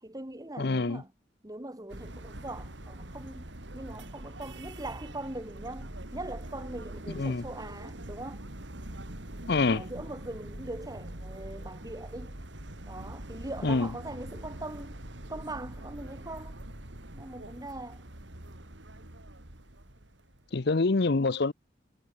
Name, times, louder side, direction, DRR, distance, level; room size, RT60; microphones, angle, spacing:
voice 1, 0.0-1.1 1.4-8.4 9.7-12.4 12.9-15.0 15.3-16.6 17.1-18.0, right 2 dB, 20° right, 1.7 m, -41 dB
voice 2, 0.6-1.0 7.1-7.5 9.5-9.8 13.6-13.9 20.5-21.5, left 3 dB, 60° left, 0.7 m, -26 dB
sound 1, 1.9-20.7, right 1 dB, 75° right, 3.5 m, -44 dB
head